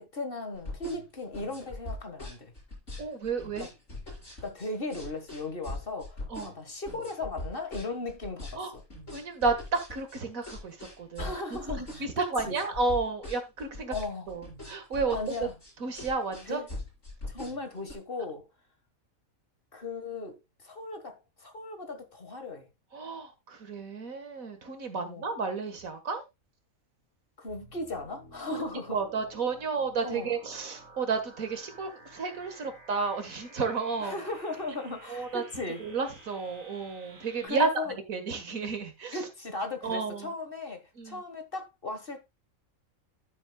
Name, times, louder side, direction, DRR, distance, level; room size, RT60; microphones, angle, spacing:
voice 1, 0.0-2.5 3.6-3.7 4.4-8.8 11.2-12.6 13.9-14.3 15.1-15.5 16.5-16.7 17.3-18.4 19.7-22.7 25.0-25.3 27.4-29.0 30.0-30.4 34.0-35.8 37.4-37.9 39.1-42.3, left 3 dB, 40° left, 1.8 m, -37 dB
sound 1, 0.5-17.9, left 2 dB, 55° left, 5.9 m, -41 dB
voice 2, 3.0-3.7 6.3-6.5 8.6-8.7 9.1-13.9 14.3-15.2 15.8-16.6 22.9-26.2 28.5-34.2 35.1-35.4 35.8-37.7 38.1-39.2 39.8-40.3 41.0-41.2, right 4 dB, 80° right, 2.1 m, -32 dB
sound 2, 27.5-37.5, right 2 dB, 55° right, 3.5 m, -53 dB
13.0 x 7.6 x 2.3 m
omnidirectional pair, 1.4 m